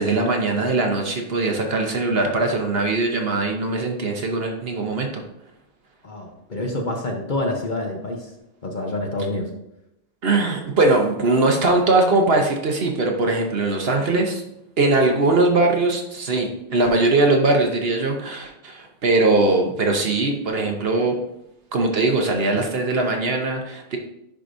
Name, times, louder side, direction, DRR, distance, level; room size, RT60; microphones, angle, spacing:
voice 1, 0.0-5.2 10.2-14.4 14.8-21.2 21.7-24.0, right 2 dB, 55° right, 2 dB, 1.1 m, -21 dB
voice 2, 6.0-8.3 8.6-9.5, left 2 dB, 40° left, 1 dB, 0.9 m, -27 dB
10.5 x 4.9 x 2.6 m, 0.87 s
omnidirectional pair, 1.3 m